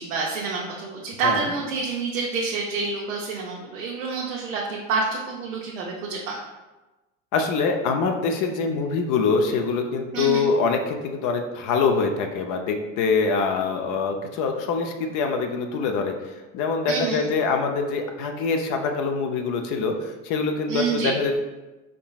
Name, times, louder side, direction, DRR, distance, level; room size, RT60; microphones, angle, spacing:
voice 1, 0.0-6.3 10.1-10.4 16.9-17.2 20.7-21.1, right 4 dB, 85° right, -3 dB, 0.7 m, -28 dB
voice 2, 7.3-21.3, left 4 dB, 50° left, 4 dB, 0.6 m, -24 dB
4.5 x 3.7 x 2.3 m, 1.1 s
hypercardioid pair, 90°, 39 cm